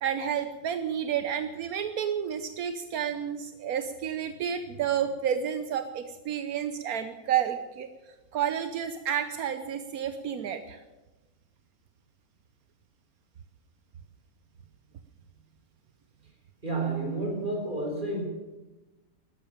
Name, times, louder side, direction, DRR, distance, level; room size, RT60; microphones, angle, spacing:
voice 1, 0.0-7.9 8.3-10.8, right 8 dB, 80° right, 9 dB, 1.4 m, -30 dB
voice 2, 16.6-18.3, right 2 dB, 35° right, 1 dB, 4.5 m, -30 dB
13.0 x 12.5 x 8.9 m, 1.1 s
omnidirectional pair, 1.5 m